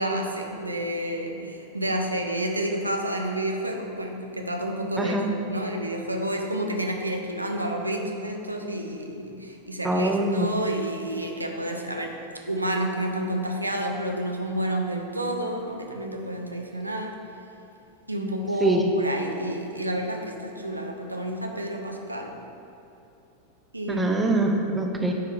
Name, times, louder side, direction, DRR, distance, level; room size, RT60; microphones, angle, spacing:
voice 1, 0.0-12.2 12.5-17.2 18.1-22.3 23.7-24.2, right 1 dB, 85° right, 2 dB, 0.7 m, -30 dB
voice 2, 5.0-5.3 9.8-10.5 18.6-18.8 23.9-25.1, right 2 dB, 10° right, 2 dB, 0.8 m, -23 dB
9.5 x 3.7 x 4.7 m, 2.9 s
figure-of-eight pair, 90°, 0 cm